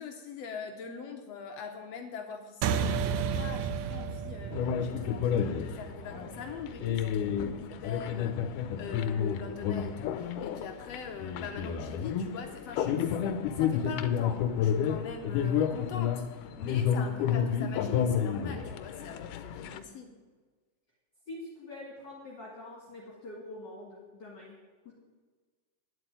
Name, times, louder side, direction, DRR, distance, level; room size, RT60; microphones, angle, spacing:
voice 1, 0.0-4.5 4.8-13.1 13.5-20.1, left 6 dB, 70° left, 4 dB, 1.7 m, -43 dB
sound 1, 2.6-7.4, right 7 dB, 75° right, 1.8 m, -33 dB
sound 2, 4.5-19.8, left 8 dB, 90° left, 2.2 m, -31 dB
voice 2, 21.3-24.6 24.8-24.9, left 2 dB, 40° left, -3 dB, 2.3 m, -45 dB
10.0 x 7.7 x 9.1 m, 1.4 s
omnidirectional pair, 3.6 m